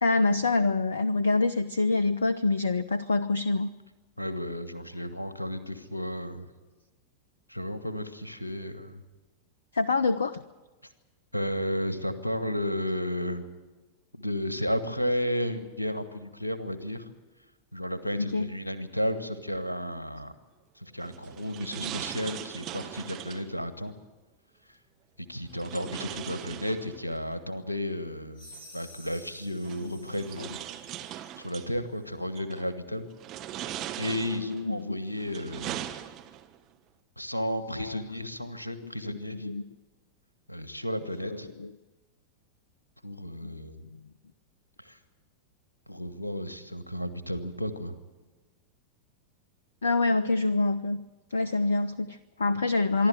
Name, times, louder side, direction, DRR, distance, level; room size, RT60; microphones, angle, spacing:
voice 1, 0.0-3.7 9.7-10.4 18.2-18.5 21.7-21.9 29.8-30.1 34.4-35.0 37.8-38.3 39.0-39.6 41.2-41.7 43.4-43.5 43.9-44.0 49.8-51.0 51.3-53.1, left 3 dB, 70° left, 16 dB, 0.6 m, -26 dB
voice 2, 4.2-6.5 7.5-9.0 11.3-13.5 14.1-17.1 17.7-20.3 20.8-23.9 25.3-28.5 28.7-30.6 31.4-33.1 34.0-35.9 37.2-39.5 40.5-41.5 43.0-43.8 44.8-45.0 45.9-48.0, equal, 85° left, 11 dB, 1.4 m, -33 dB
sound 1, 21.0-23.5 25.5-27.2 28.5-28.6 29.6-31.7 32.3-32.7 33.2-34.6 35.1-36.6, right 12 dB, 35° right, 1.2 m, -40 dB
sound 2, 28.3-31.3, equal, 35° left, 5.5 m, -52 dB
25.5 x 12.0 x 9.3 m, 1.2 s
figure-of-eight pair, 90°, 0 cm